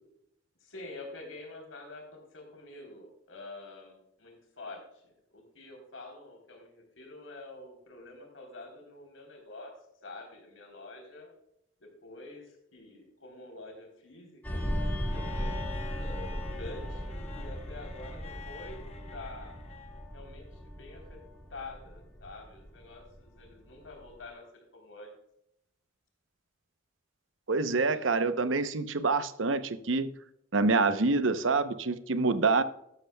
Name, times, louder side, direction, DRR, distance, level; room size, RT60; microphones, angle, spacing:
voice 1, 0.6-11.3 11.8-14.7 15.1-18.9 19.1-19.6 20.1-21.2 21.5-25.1, left 2 dB, 80° left, 1 dB, 3.6 m, -47 dB
sound 1, 14.4-23.5 23.8-24.1, equal, 10° left, 2.0 m, -37 dB
Bowed string instrument, 15.1-20.1 21.6-21.7, left 4 dB, 30° left, 1.0 m, -48 dB
voice 2, 27.5-30.1 30.5-32.6, right 3 dB, 75° right, 11 dB, 0.8 m, -26 dB
12.5 x 11.5 x 2.3 m, 0.77 s
head